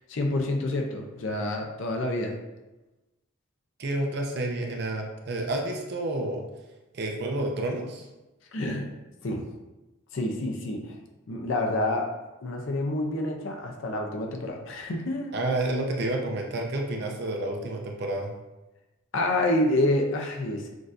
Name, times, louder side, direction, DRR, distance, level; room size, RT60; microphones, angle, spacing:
voice 1, 0.0-2.3 8.5-8.9 9.2-9.4 10.1-11.0 11.3-12.1 12.4-15.3 19.1-20.7, left 1 dB, 65° left, 2 dB, 0.5 m, -28 dB
voice 2, 3.8-6.4 6.9-8.0 15.3-18.3, right 2 dB, 50° right, 1 dB, 0.6 m, -29 dB
6.1 x 2.6 x 2.5 m, 1.1 s
head